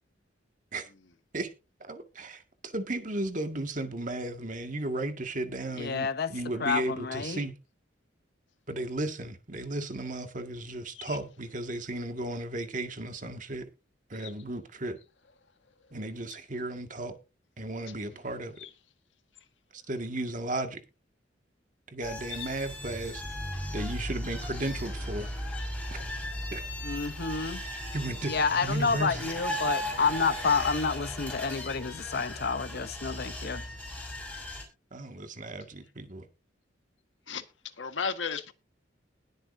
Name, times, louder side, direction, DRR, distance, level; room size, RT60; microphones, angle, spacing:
voice 1, 1.8-2.4 2.7-7.5 8.7-13.7 14.1-15.0 15.9-17.2 17.6-18.5 19.7-20.8 21.9-23.2 23.7-25.3 26.5-26.6 27.9-28.3 28.6-29.2 34.9-36.3, right 2 dB, 45° right, 1.9 m, -34 dB
voice 2, 5.8-6.3 6.6-7.4 26.8-27.6 28.3-33.6, left 5 dB, 55° left, 0.8 m, -29 dB
sound 1, 22.0-34.6, equal, 10° left, 5.9 m, -36 dB
voice 3, 37.8-38.5, left 6 dB, 80° left, 1.6 m, -35 dB
21.0 x 7.8 x 2.7 m
head